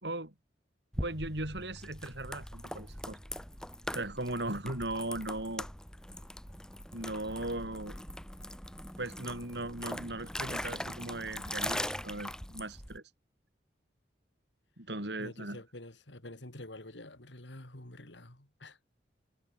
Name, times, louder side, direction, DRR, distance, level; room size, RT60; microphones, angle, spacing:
voice 1, 0.0-0.3 1.0-3.2 3.9-5.7 6.9-8.0 9.0-13.0 14.8-15.6, right 2 dB, 70° right, 5.5 m, -38 dB
sound 1, 0.9-13.0, left 1 dB, 5° left, 1.9 m, -41 dB
voice 2, 15.2-18.8, left 1 dB, 85° left, 3.6 m, -48 dB
head